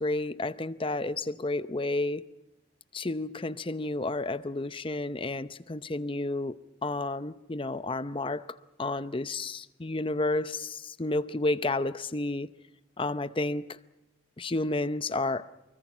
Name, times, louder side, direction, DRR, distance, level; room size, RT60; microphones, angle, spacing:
voice 1, 0.0-2.3 2.9-8.5 8.8-12.5 13.0-13.8 14.4-15.5, left 2 dB, 30° left, 0.7 m, -31 dB
25.5 x 23.5 x 6.2 m
head